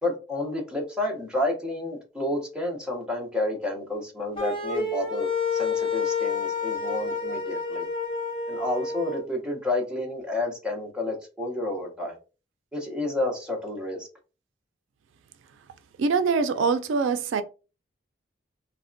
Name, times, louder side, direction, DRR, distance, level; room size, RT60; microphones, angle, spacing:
voice 1, 0.0-7.9 8.5-12.2 12.7-14.1, left 1 dB, 5° right, 0.7 m, -30 dB
sound 1, 4.3-9.2, left 4 dB, 30° left, 0.7 m, -29 dB
voice 2, 16.0-17.4, right 5 dB, 80° right, 0.3 m, -23 dB
3.3 x 2.1 x 2.5 m
head